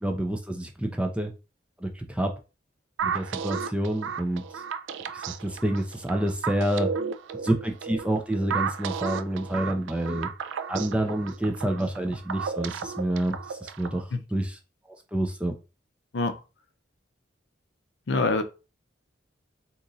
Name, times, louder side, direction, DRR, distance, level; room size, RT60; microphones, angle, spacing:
voice 1, 0.0-1.3 1.8-2.3 3.0-4.4 5.1-6.9 7.3-10.3 10.7-14.6 15.1-15.5, right 1 dB, 5° right, 0.4 m, -28 dB
sound 1, 3.0-14.0, right 6 dB, 85° right, 0.3 m, -33 dB
voice 2, 18.1-18.4, left 3 dB, 70° left, 0.5 m, -24 dB
2.9 x 2.5 x 3.9 m
head